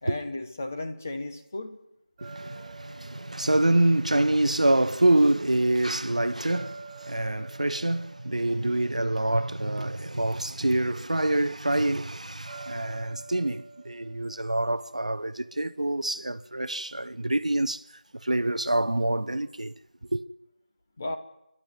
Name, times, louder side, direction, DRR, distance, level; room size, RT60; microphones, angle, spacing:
voice 1, 0.0-1.8 21.0-21.2, left 2 dB, 15° left, 1.0 m, -34 dB
sound 1, 2.2-5.3 6.5-10.0 12.5-15.5, right 4 dB, 5° right, 3.2 m, -48 dB
voice 2, 2.2-19.7 20.0-20.2, right 1 dB, 50° right, 0.9 m, -26 dB
29.5 x 12.0 x 9.5 m
figure-of-eight pair, 175°, 5 cm